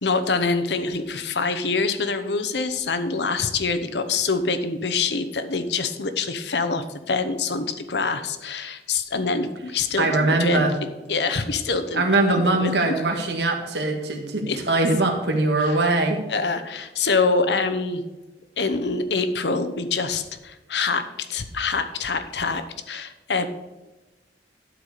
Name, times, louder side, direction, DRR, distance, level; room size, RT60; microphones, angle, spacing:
voice 1, 0.0-10.7 11.1-12.0 12.3-12.9 14.5-14.6 15.6-15.8 16.3-18.0 18.6-23.5, left 4 dB, 75° left, 10 dB, 0.9 m, -25 dB
voice 2, 10.0-10.7 11.9-16.2, right 2 dB, 75° right, 3 dB, 1.8 m, -21 dB
12.0 x 4.7 x 6.7 m, 1.1 s
head